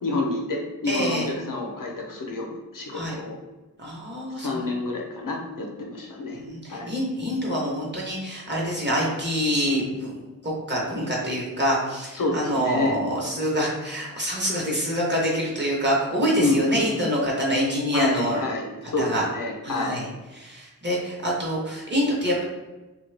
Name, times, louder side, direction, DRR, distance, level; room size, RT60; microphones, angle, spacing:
voice 1, 0.0-3.4 4.4-6.4 6.7-6.9 12.1-12.9 16.3-17.0 17.9-20.0, left 3 dB, 70° left, 0 dB, 0.7 m, -28 dB
voice 2, 0.9-1.3 2.9-3.2 3.8-4.7 6.4-10.2 10.4-18.4 19.0-19.3 19.6-20.1 20.3-22.4, equal, 30° right, -4 dB, 0.9 m, -26 dB
3.2 x 2.2 x 3.2 m, 1.1 s
wide cardioid pair, 120°, 34 cm